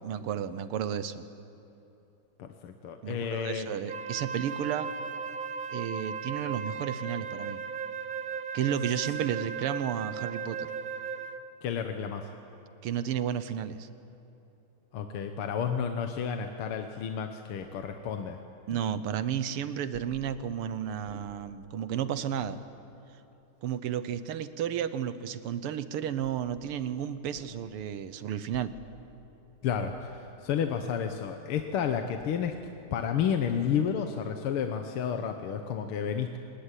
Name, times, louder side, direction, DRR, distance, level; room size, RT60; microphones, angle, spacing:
voice 1, 0.0-1.2 3.0-4.9 5.7-7.6 8.5-10.7 12.8-13.9 18.7-22.6 23.6-28.7, right 9 dB, 90° right, 13 dB, 1.9 m, -32 dB
voice 2, 2.4-3.7 11.6-12.3 14.9-18.4 29.6-32.6 32.9-36.4, left 7 dB, 80° left, 6 dB, 2.0 m, -31 dB
Wind instrument woodwind instrument, 3.9-11.5, right 6 dB, 55° right, 0.5 m, -36 dB
sound 1, 17.6-17.8 18.7-18.9 19.9-20.2 21.1-21.2 22.0-22.3 23.1-23.2 23.4-24.4 26.2-26.6 27.3-27.7 28.5-28.9 29.7-30.0 30.8-31.1 32.2-32.4 33.4-33.8, left 1 dB, 65° left, 6.1 m, -52 dB
26.5 x 21.0 x 10.0 m, 2.9 s
omnidirectional pair, 2.4 m